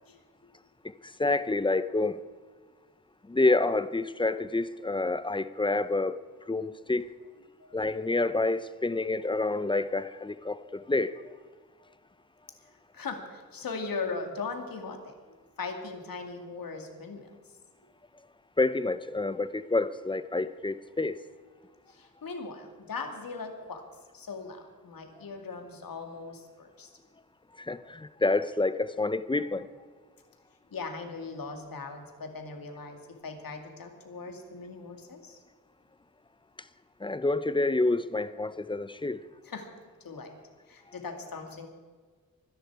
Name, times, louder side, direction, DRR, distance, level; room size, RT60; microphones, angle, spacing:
voice 1, 1.0-2.2 3.3-6.2 6.5-7.1 7.7-11.3 18.6-21.2 27.6-29.7 37.0-39.2 40.9-41.0, left 2 dB, 15° left, 14 dB, 0.5 m, -28 dB
voice 2, 12.9-15.1 15.6-17.3 22.0-23.8 24.1-26.9 30.7-35.4 39.5-39.7 40.0-40.3 40.7-41.7, left 4 dB, 75° left, 4 dB, 2.3 m, -39 dB
24.0 x 10.5 x 4.7 m, 1.5 s
wide cardioid pair, 160°, 34 cm